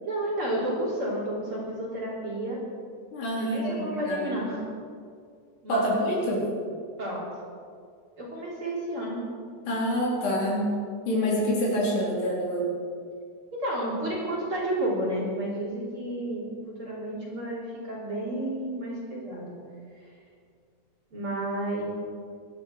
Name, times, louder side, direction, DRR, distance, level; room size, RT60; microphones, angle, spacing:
voice 1, 0.0-2.6 3.4-4.6 5.6-6.1 7.0-7.2 8.2-9.2 13.5-19.6 20.0-20.1 21.1-21.8, right 1 dB, 30° right, -5 dB, 4.0 m, -31 dB
voice 2, 3.1-4.3 5.7-6.4 9.7-10.7 11.1-12.7, equal, 75° left, -4 dB, 5.9 m, -26 dB
24.5 x 11.5 x 4.7 m, 2.2 s
omnidirectional pair, 4.8 m